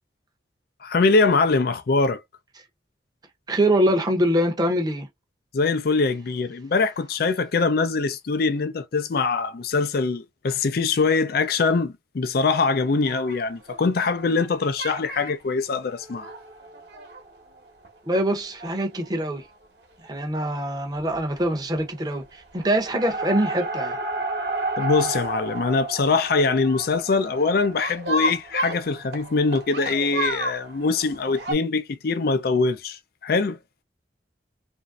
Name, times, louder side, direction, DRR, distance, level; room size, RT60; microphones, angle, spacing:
voice 1, 0.8-2.2 5.5-16.3 24.8-33.6, left 4 dB, 60° left, 0.4 m, -23 dB
voice 2, 3.5-5.1 18.1-19.5 20.0-24.0, right 1 dB, 25° right, 0.7 m, -24 dB
sound 1, 12.9-14.5 14.8-15.3 15.8-17.9 18.3-18.4 18.6-18.7 19.0-19.1 20.5-20.7 21.0-21.5 21.7-22.3 22.6-31.5, right 1 dB, 65° right, 1.1 m, -32 dB
3.0 x 2.6 x 2.3 m
head